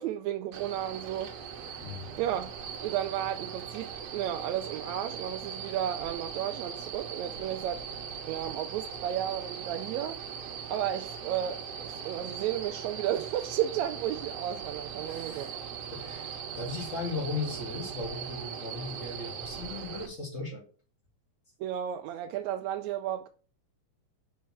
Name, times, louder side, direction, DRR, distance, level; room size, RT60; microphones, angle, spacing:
voice 1, 0.0-1.3 2.2-2.5 2.8-7.8 8.3-10.2 10.7-15.5 21.6-23.3, right 11 dB, 80° right, 1.7 m, -33 dB
sound 1, 0.5-20.1, right 7 dB, 60° right, 1.9 m, -40 dB
voice 2, 15.1-15.6 15.9-20.6, left 3 dB, 30° left, 2.0 m, -37 dB
5.6 x 4.3 x 6.0 m
omnidirectional pair, 3.5 m